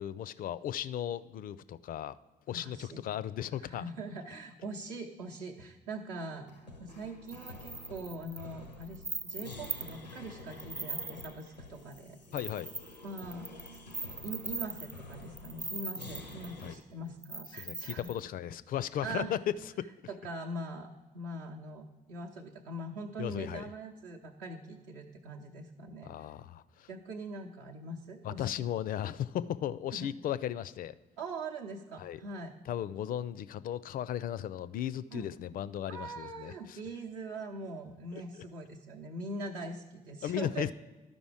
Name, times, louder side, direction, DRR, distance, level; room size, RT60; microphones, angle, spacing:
voice 1, 0.0-2.2 2.5-3.8 12.3-12.7 16.6-16.7 17.6-19.9 23.2-23.6 26.0-26.9 28.2-30.9 32.0-32.2 32.7-36.8 40.2-40.7, left 10 dB, 45° left, 17 dB, 0.4 m, -36 dB
voice 2, 2.5-3.0 3.6-6.5 6.8-12.2 13.0-13.8 14.2-18.1 19.0-19.3 20.1-26.3 26.9-28.5 29.9-30.1 31.2-32.5 35.1-35.3 35.9-40.7, right 2 dB, 65° right, -2 dB, 0.7 m, -42 dB
sound 1, 6.4-16.8, left 2 dB, 90° left, 0.6 m, -49 dB
sound 2, 7.3-10.1 10.5-11.5 11.9-12.0 12.3-16.6 17.2-18.2, right 3 dB, 20° right, 0.6 m, -40 dB
12.5 x 5.2 x 4.8 m, 1.2 s
figure-of-eight pair, 40°, 21 cm